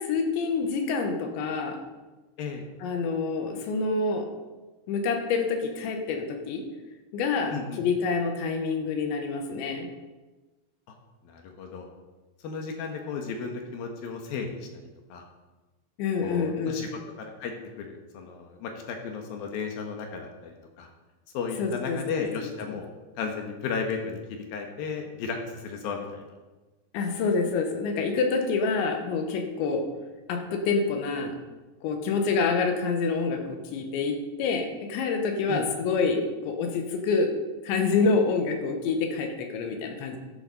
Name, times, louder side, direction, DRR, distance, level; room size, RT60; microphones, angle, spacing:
voice 1, 0.0-1.8 2.8-4.3 4.9-6.7 7.1-9.9 16.0-16.9 21.6-22.3 22.7-22.8 26.9-29.9 30.3-31.4 31.8-37.3 37.6-40.2, left 4 dB, 90° left, 4 dB, 3.6 m, -27 dB
voice 2, 7.5-7.8 11.2-11.9 12.4-14.6 15.1-15.2 16.2-16.9 17.2-17.5 17.8-20.9 21.3-22.9 23.2-24.2 24.5-26.2 35.5-35.7, left 5 dB, 65° left, 3 dB, 2.7 m, -34 dB
13.0 x 11.5 x 4.2 m, 1.2 s
omnidirectional pair, 5.1 m